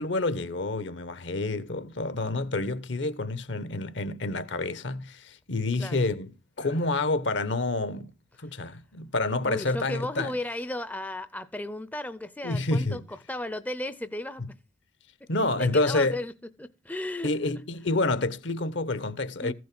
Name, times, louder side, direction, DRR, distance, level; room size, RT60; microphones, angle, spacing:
voice 1, 0.0-6.3 6.6-8.1 8.4-10.4 12.4-13.0 15.3-16.2 17.2-19.5, left 2 dB, 65° left, 1.0 m, -28 dB
voice 2, 9.4-14.5 15.3-16.3 16.6-17.3 19.4-19.5, left 1 dB, 10° left, 0.5 m, -35 dB
15.0 x 6.2 x 6.0 m
head